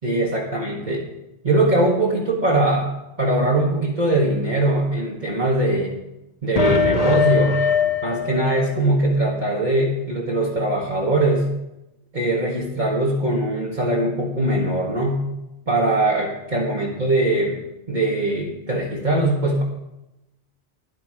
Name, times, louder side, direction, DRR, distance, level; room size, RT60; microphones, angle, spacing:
voice 1, 0.0-1.1 1.4-2.9 3.2-6.0 6.4-7.6 8.0-11.5 12.1-15.2 15.7-17.6 17.9-19.6, right 1 dB, 40° right, -3 dB, 1.7 m, -21 dB
sound 1, 6.6-9.2, left 5 dB, 35° left, 1.2 m, -21 dB
13.0 x 10.5 x 4.9 m, 0.93 s
omnidirectional pair, 1.2 m